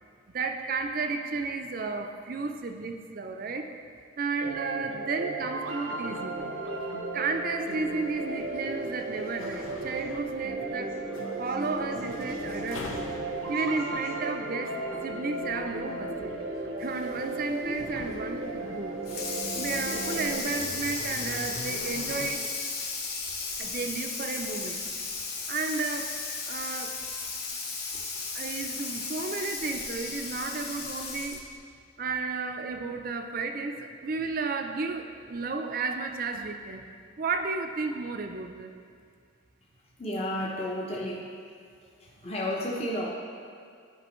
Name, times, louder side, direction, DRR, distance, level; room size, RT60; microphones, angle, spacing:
voice 1, 0.3-3.7 4.2-6.4 7.1-10.9 11.4-13.1 13.5-14.7 15.0-16.3 16.8-19.0 19.5-22.4 23.6-24.8 25.5-26.1 26.4-26.9 28.3-31.4 32.0-36.9 37.2-38.7, right 4 dB, 45° right, 5 dB, 0.5 m, -33 dB
sound 1, 4.4-20.4, right 2 dB, 90° right, 0.9 m, -35 dB
sound 2, 6.1-22.3, left 2 dB, 85° left, 0.8 m, -45 dB
Water tap faucet / Sink (filling or washing), 19.0-31.5, left 4 dB, 50° left, 1.0 m, -35 dB
voice 2, 40.0-41.3 42.0-43.1, left 1 dB, 30° left, -3 dB, 0.8 m, -32 dB
12.5 x 5.2 x 3.0 m, 2.3 s
head